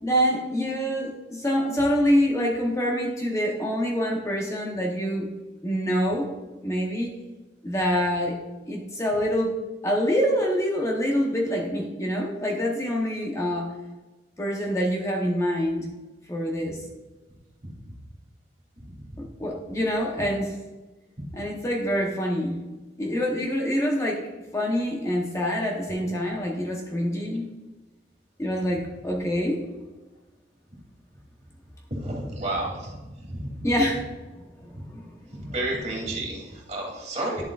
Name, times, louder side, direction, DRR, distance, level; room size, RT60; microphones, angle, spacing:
voice 1, 0.0-5.3 5.6-6.3 6.6-7.1 7.6-8.4 8.7-13.7 14.4-15.9 16.3-16.8 19.2-20.6 21.3-22.6 23.0-27.5 28.4-29.6 33.6-34.1 34.3-35.1, equal, 15° left, 0 dB, 0.9 m, -26 dB
voice 2, 31.9-33.0 33.3-33.7 35.5-37.4, right 1 dB, 40° right, -2 dB, 2.6 m, -31 dB
10.5 x 7.5 x 2.4 m, 1.2 s
head